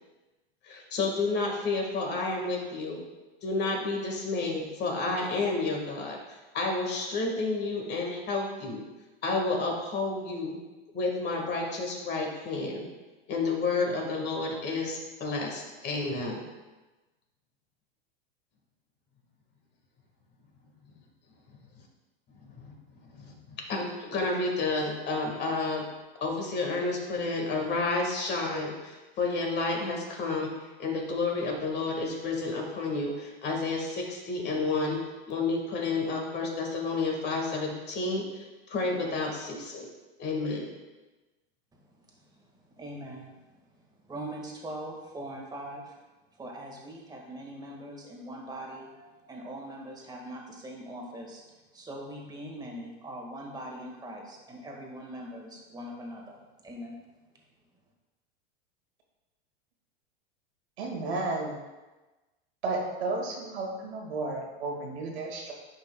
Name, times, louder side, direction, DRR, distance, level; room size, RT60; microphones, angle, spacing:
voice 1, 0.6-3.0 3.4-8.8 9.2-10.6 10.9-12.9 13.3-16.4 22.4-22.7 23.1-25.9 26.2-30.5 30.8-39.9 40.2-40.7, left 3 dB, 35° left, 1 dB, 1.7 m, -30 dB
voice 2, 41.9-42.4 42.8-43.7 44.1-45.9 46.4-51.4 51.7-57.0, right 1 dB, 15° right, -1 dB, 1.7 m, -42 dB
voice 3, 60.8-61.6 62.6-65.5, right 3 dB, 85° right, -1 dB, 1.9 m, -32 dB
10.5 x 5.5 x 2.2 m, 1.1 s
hypercardioid pair, 120°, 31 cm